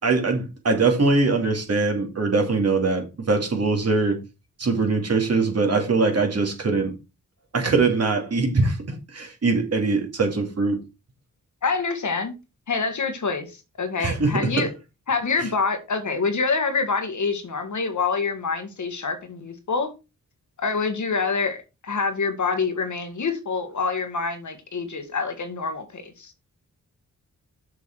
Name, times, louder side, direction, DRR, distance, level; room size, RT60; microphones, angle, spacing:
voice 1, 0.0-4.2 4.6-6.9 7.5-10.8 14.0-14.7, right 3 dB, 50° right, 2.7 m, -22 dB
voice 2, 11.6-12.3 12.7-14.7 15.1-19.9 20.6-26.3, left 4 dB, 60° left, 1.8 m, -26 dB
6.7 x 6.4 x 4.7 m
wide cardioid pair, 150°, 33 cm